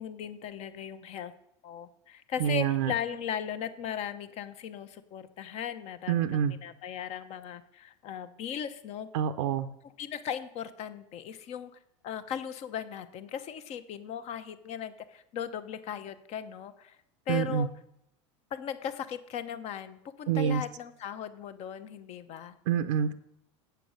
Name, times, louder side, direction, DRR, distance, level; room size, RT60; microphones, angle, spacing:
voice 1, 0.0-1.3 1.6-9.1 10.0-11.7 12.0-17.0 17.3-17.7 18.5-22.6, left 9 dB, 45° left, 12 dB, 0.8 m, -37 dB
voice 2, 2.4-2.9 6.1-6.6 9.1-9.7 17.3-17.7 20.3-20.6 22.7-23.1, right 9 dB, 80° right, 8 dB, 0.6 m, -27 dB
8.0 x 6.9 x 6.3 m, 0.80 s
supercardioid pair, 110°, 15 cm